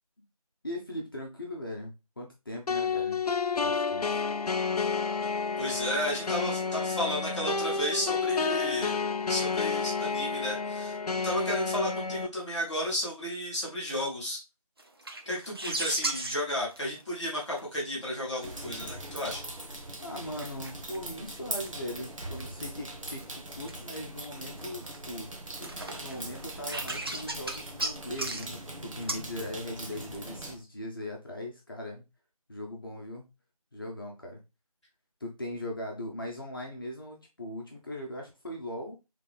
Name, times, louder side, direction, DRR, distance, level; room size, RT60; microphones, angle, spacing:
voice 1, 0.6-3.2 3.6-4.2 20.0-25.3 25.6-32.0 32.5-33.3 33.7-34.4 35.2-39.0, left 1 dB, 35° left, -1 dB, 0.9 m, -39 dB
sound 1, 2.7-12.3, left 5 dB, 85° left, 0.5 m, -30 dB
voice 2, 5.6-14.4 15.2-19.4, equal, ahead, -21 dB, 1.2 m, -33 dB
sound 2, 14.8-17.8 18.0-19.4 19.8-22.0 22.4-24.3 24.6-25.2 25.5-28.7 29.0-29.3 29.9-30.5, right 2 dB, 40° right, 0.6 m, -37 dB
sound 3, 18.4-30.5, right 1 dB, 55° right, 1.1 m, -41 dB
4.2 x 3.4 x 3.3 m, 0.26 s
figure-of-eight pair, 170°, 19 cm